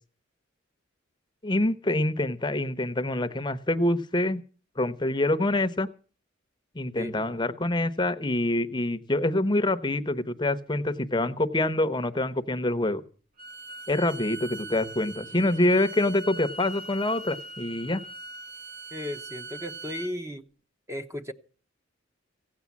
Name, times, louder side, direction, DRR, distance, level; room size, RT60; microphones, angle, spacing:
voice 1, 1.4-4.4 4.8-5.9 6.7-13.0 13.9-18.0, left 1 dB, 25° left, 0.9 m, -26 dB
Bowed string instrument, 13.4-20.1, right 3 dB, 50° right, 1.1 m, -41 dB
voice 2, 18.9-20.4 20.9-21.3, left 1 dB, 15° right, 0.9 m, -35 dB
16.5 x 9.4 x 7.3 m
head